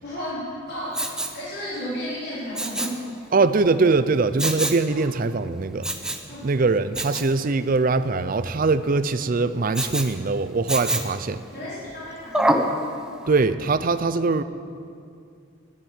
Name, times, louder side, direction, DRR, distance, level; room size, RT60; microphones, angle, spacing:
voice 1, 0.0-3.0 4.9-5.0 6.3-6.5 11.5-12.6, equal, 50° left, -9 dB, 4.7 m, -33 dB
Respiratory sounds, 0.9-1.4 2.5-3.0 4.4-4.8 5.8-6.3 6.9-7.3 9.7-10.1 10.7-11.2 12.3-12.7 13.2-13.3, right 1 dB, 5° right, 0.8 m, -25 dB
voice 2, 3.3-5.9 6.4-11.4 13.3-14.4, right 3 dB, 40° right, 12 dB, 0.5 m, -22 dB
12.0 x 10.5 x 10.0 m, 2.4 s
head